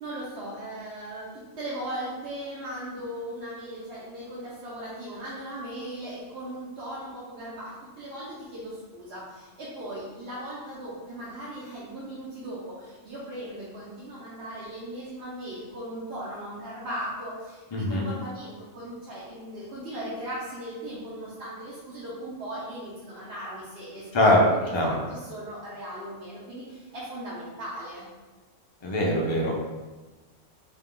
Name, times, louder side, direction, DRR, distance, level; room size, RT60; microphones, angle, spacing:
voice 1, 0.0-28.0, right 1 dB, 60° right, -7 dB, 1.0 m, -38 dB
voice 2, 17.7-18.1 24.1-24.4 24.7-24.9 28.8-29.5, left 1 dB, 30° left, -2 dB, 0.5 m, -22 dB
4.2 x 2.3 x 3.7 m, 1.3 s
omnidirectional pair, 1.3 m